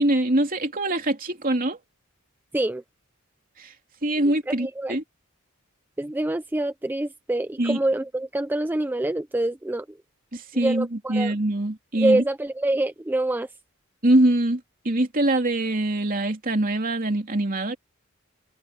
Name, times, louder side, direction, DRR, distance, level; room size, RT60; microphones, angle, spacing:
voice 1, 0.0-1.8 3.6-3.7 4.0-5.0 7.6-7.8 10.3-12.2 14.0-17.8, right 1 dB, 40° right, 3.0 m, -23 dB
voice 2, 4.5-5.0 6.0-10.0 10.5-11.3 11.9-13.5, right 1 dB, 10° right, 0.4 m, -26 dB
head